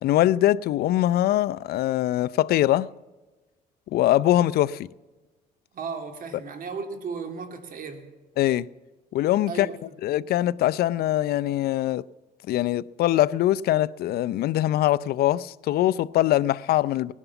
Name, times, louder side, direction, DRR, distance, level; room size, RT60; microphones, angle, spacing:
voice 1, 0.0-2.9 3.9-4.9 8.4-8.7 9.1-9.7 10.0-12.0 12.5-17.1, left 14 dB, 65° left, 0.5 m, -22 dB
voice 2, 5.7-8.1 9.5-9.9, right 5 dB, 55° right, 2.6 m, -35 dB
18.5 x 11.0 x 7.0 m
cardioid pair, 110°, 17 cm